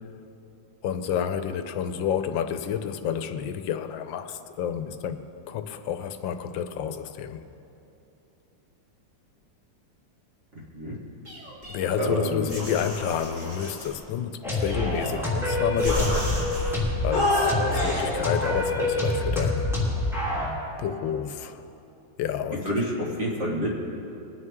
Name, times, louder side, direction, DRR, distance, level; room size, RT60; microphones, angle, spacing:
voice 1, 0.8-7.4 11.7-16.3 17.0-19.7 20.8-21.7 22.2-22.7, left 8 dB, 85° left, 9 dB, 1.4 m, -30 dB
voice 2, 10.5-11.0 12.0-12.5 22.6-23.7, equal, 40° right, -4 dB, 1.8 m, -28 dB
sound 1, 11.2-12.1 12.5-13.9 14.6-15.4 15.8-16.7 17.1-18.1, left 2 dB, 20° right, 3.7 m, -30 dB
sound 2, 14.4-20.5, left 1 dB, ahead, 2.9 m, -26 dB
21.0 x 9.5 x 3.6 m, 2.9 s
omnidirectional pair, 2.0 m